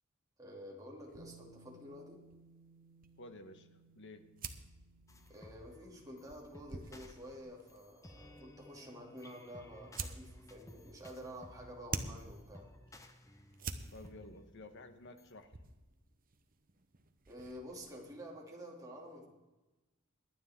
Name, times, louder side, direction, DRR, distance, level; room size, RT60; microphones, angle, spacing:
voice 1, 0.4-2.2 5.3-12.7 17.3-19.3, equal, 15° right, -1 dB, 2.6 m, -50 dB
sound 1, 1.1-17.9, right 4 dB, 40° right, 0.9 m, -50 dB
Bass guitar, 1.2-7.4, right 3 dB, 80° right, 2.1 m, -63 dB
voice 2, 3.2-3.7 3.9-4.3 13.9-15.5, left 2 dB, 55° left, 8 dB, 1.2 m, -52 dB
sound 2, 5.1-15.3, left 1 dB, 15° left, 0.9 m, -58 dB
22.0 x 9.5 x 3.7 m, 1.1 s
head